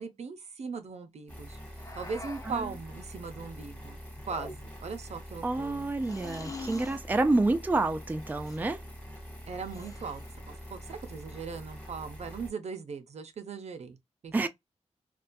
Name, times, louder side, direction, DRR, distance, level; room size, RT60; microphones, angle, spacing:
voice 1, 0.0-1.6 1.9-4.0 4.3-5.9 9.5-10.2 10.5-14.0 14.2-14.5, right 5 dB, 65° right, 0.6 m, -39 dB
sound 1, 1.3-12.5, equal, 10° left, 1.1 m, -45 dB
sound 2, 1.8-2.7 4.2-4.9 6.0-7.0 8.3-8.7 9.6-10.3, left 2 dB, 30° left, 0.6 m, -44 dB
voice 2, 5.4-8.8 14.3-14.5, right 2 dB, 15° right, 0.3 m, -28 dB
2.4 x 2.2 x 2.5 m
cardioid pair, 70°, 12 cm